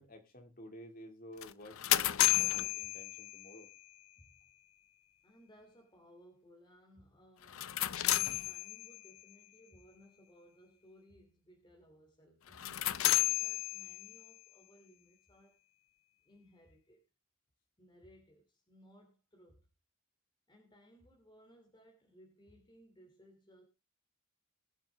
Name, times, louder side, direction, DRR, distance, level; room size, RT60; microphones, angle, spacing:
voice 1, 0.0-3.7, equal, 40° left, 5 dB, 2.5 m, -52 dB
sound 1, 1.4-3.7 7.4-9.1 12.5-14.3, left 14 dB, 75° left, 0.5 m, -32 dB
voice 2, 4.2-4.5 5.2-15.6 16.2-17.0 17.8-19.7 20.5-23.6, equal, 20° left, 2 dB, 2.8 m, -62 dB
20.5 x 7.7 x 3.5 m, 0.28 s
head